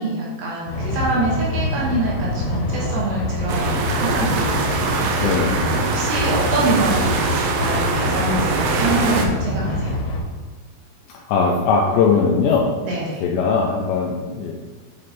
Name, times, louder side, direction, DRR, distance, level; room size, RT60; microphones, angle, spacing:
voice 1, 0.0-5.3 5.5-10.0 12.8-13.2, right 2 dB, 70° right, -5 dB, 2.7 m, -25 dB
sound 1, 0.7-10.2, left 1 dB, 70° left, 2.6 m, -25 dB
sound 2, 3.5-9.3, right 4 dB, 90° right, 2.3 m, -23 dB
voice 2, 5.2-5.6 11.3-12.7 13.2-14.5, left 5 dB, 90° left, -1 dB, 2.5 m, -19 dB
9.1 x 3.2 x 4.1 m, 1.4 s
omnidirectional pair, 5.7 m